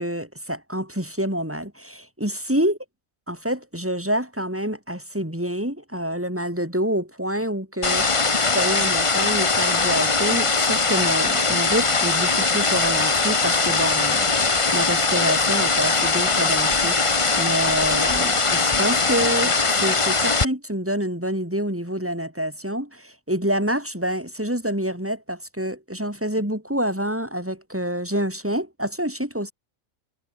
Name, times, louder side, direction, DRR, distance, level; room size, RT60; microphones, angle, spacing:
voice 1, 0.0-2.8 3.3-29.5, equal, 10° right, 4.5 m, -27 dB
sound 1, 7.8-20.5, left 3 dB, 25° left, 1.1 m, -21 dB
omnidirectional pair, 1.4 m